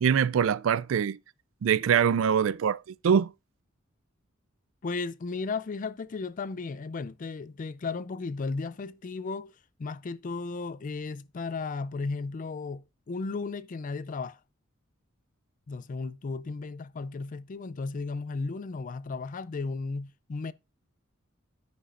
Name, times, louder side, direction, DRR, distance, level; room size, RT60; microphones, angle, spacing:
voice 1, 0.0-1.2 1.6-3.3, right 7 dB, 70° right, 0.4 m, -24 dB
voice 2, 4.8-9.5 9.8-14.4 15.7-20.5, left 4 dB, 40° left, 0.4 m, -35 dB
14.0 x 5.2 x 2.5 m
head